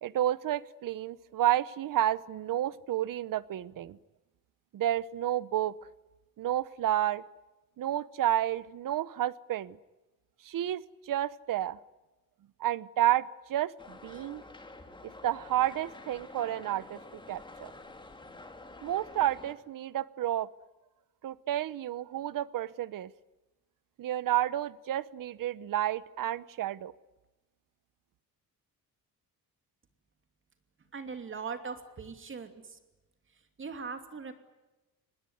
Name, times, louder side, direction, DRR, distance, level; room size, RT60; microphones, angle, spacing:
voice 1, 0.0-4.0 4.7-5.8 6.4-7.2 7.8-9.8 10.4-11.8 12.6-14.4 15.0-17.0 17.3-17.7 18.8-20.5 21.2-23.1 24.0-26.9, right 12 dB, 60° right, 18 dB, 1.0 m, -30 dB
sound 1, 13.8-19.6, left 2 dB, 15° left, 2.2 m, -49 dB
voice 2, 30.9-32.8 33.6-34.3, right 5 dB, 35° right, 7 dB, 2.8 m, -40 dB
26.0 x 20.5 x 9.5 m, 1.1 s
cardioid pair, 170°, 37 cm